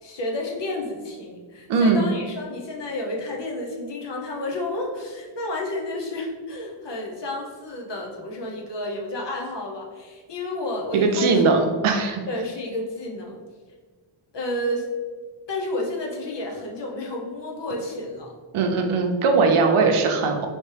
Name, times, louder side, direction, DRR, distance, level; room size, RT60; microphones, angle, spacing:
voice 1, 0.0-11.6 12.3-13.4 14.3-14.9 15.5-18.3, left 1 dB, 60° left, -1 dB, 0.9 m, -31 dB
voice 2, 1.7-2.1 10.9-12.2 18.5-20.5, right 4 dB, 85° right, 3 dB, 0.7 m, -20 dB
4.3 x 3.2 x 3.3 m, 1.5 s
wide cardioid pair, 115°, 48 cm